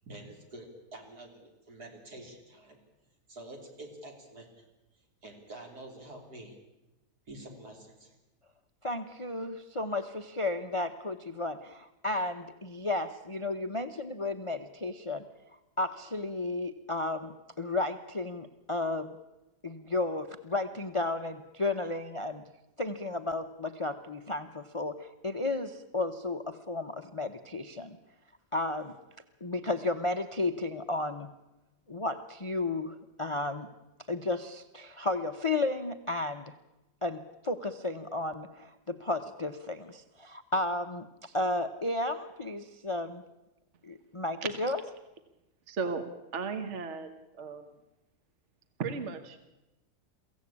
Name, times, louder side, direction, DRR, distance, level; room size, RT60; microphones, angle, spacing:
voice 1, 0.0-2.8 3.3-4.6 5.2-6.6 7.3-8.1, right 1 dB, 70° right, 2 dB, 3.8 m, -47 dB
voice 2, 8.8-15.2 15.8-19.1 19.6-22.4 22.8-28.0 28.5-28.9 29.4-31.3 31.9-33.7 34.1-36.4 37.0-43.2 43.8-44.8, left 2 dB, 30° left, 10 dB, 0.6 m, -33 dB
voice 3, 45.7-46.1 46.3-47.1 47.4-47.6 48.8-49.4, right 5 dB, 45° right, 8 dB, 1.6 m, -34 dB
23.0 x 16.0 x 8.6 m, 0.98 s
omnidirectional pair, 1.7 m